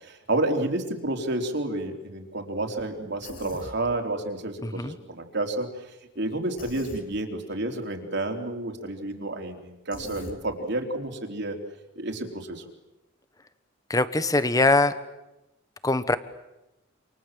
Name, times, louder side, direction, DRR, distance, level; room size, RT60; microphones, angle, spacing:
voice 1, 0.0-5.7 6.2-11.6 12.0-12.6, right 2 dB, 55° right, 3 dB, 3.8 m, -30 dB
Human voice, 3.2-3.8 6.6-7.0 9.9-10.4, left 2 dB, 45° left, 3.1 m, -42 dB
voice 2, 4.6-4.9 13.9-14.9 15.8-16.2, left 2 dB, 15° left, 13 dB, 1.2 m, -22 dB
28.5 x 27.5 x 7.6 m, 0.97 s
head